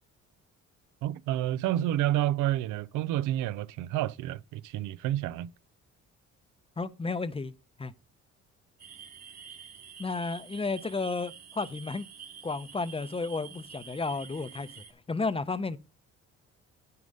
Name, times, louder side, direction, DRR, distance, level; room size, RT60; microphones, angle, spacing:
voice 1, 1.0-5.5, right 13 dB, 85° right, 0.5 m, -29 dB
voice 2, 6.8-7.5 7.8-7.9 10.0-12.1 12.4-15.8, left 3 dB, 20° left, 0.6 m, -32 dB
sound 1, 8.8-14.9, right 7 dB, 55° right, 1.9 m, -48 dB
9.6 x 5.3 x 5.2 m
cardioid pair, 90°, 30 cm